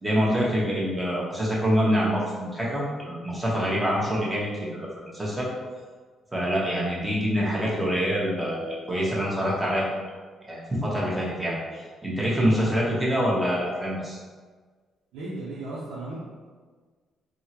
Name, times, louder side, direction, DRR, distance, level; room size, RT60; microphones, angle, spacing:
voice 1, 0.0-4.9 5.1-5.5 6.3-9.9 10.5-14.2, equal, 10° right, -5 dB, 1.0 m, -25 dB
voice 2, 15.1-16.2, right 2 dB, 90° right, -7 dB, 0.6 m, -35 dB
3.5 x 2.1 x 2.9 m, 1.5 s
cardioid pair, 90°, 0 cm